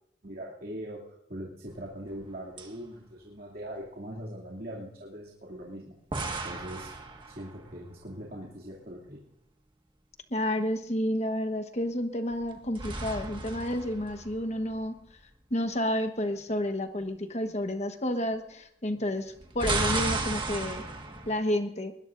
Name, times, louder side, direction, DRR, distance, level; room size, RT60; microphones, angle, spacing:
voice 1, 0.2-6.0 6.4-6.9 7.3-9.2, equal, 50° right, -5 dB, 2.6 m, -41 dB
sound 1, 1.7-2.3 2.6-2.7 6.1-7.8 12.3-14.9 19.3-21.3, right 3 dB, 25° right, 1.6 m, -34 dB
voice 2, 10.3-15.0 15.5-20.8 21.3-21.9, left 1 dB, 35° left, 7 dB, 1.3 m, -30 dB
21.0 x 20.5 x 2.6 m, 0.75 s
head